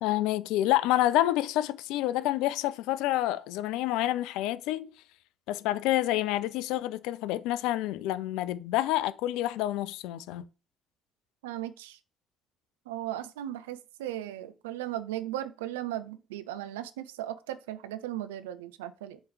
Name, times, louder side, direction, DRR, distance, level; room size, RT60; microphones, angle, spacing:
voice 1, 0.0-4.9 5.5-10.4, left 14 dB, 70° left, 0.3 m, -28 dB
voice 2, 11.4-12.0 12.9-19.2, right 13 dB, 80° right, 0.4 m, -37 dB
7.2 x 3.1 x 4.7 m
hypercardioid pair, 45°, 0 cm